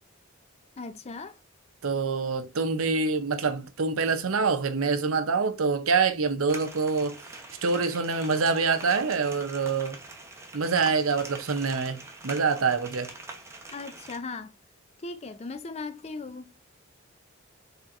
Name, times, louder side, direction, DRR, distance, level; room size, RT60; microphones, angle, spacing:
voice 1, 0.8-1.4 13.7-14.5 15.0-16.5, left 3 dB, 30° left, 0.4 m, -38 dB
voice 2, 1.8-7.2 7.6-10.0 10.5-13.1, right 4 dB, 75° right, 0.7 m, -26 dB
sound 1, 6.5-14.2, right 2 dB, 15° right, 0.7 m, -44 dB
4.3 x 3.4 x 2.5 m
head